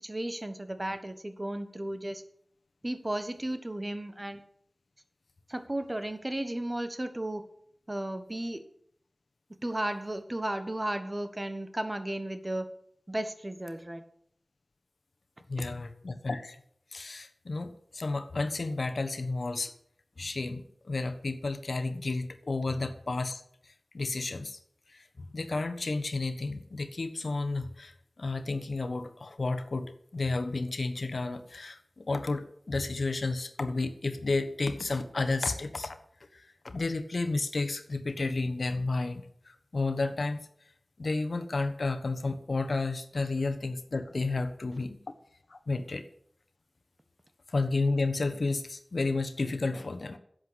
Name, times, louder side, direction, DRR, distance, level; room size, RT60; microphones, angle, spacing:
voice 1, 0.0-2.2 2.8-4.4 5.5-7.4 7.9-8.6 9.6-12.7 13.1-14.0, right 1 dB, 30° right, 9 dB, 1.5 m, -34 dB
voice 2, 15.5-16.6 16.9-19.7 20.2-24.6 24.9-36.0 36.3-40.4 41.0-45.0 45.5-46.0 47.5-50.2, left 3 dB, 75° left, 8 dB, 1.2 m, -32 dB
11.0 x 7.9 x 8.0 m, 0.67 s
wide cardioid pair, 50°, 0 cm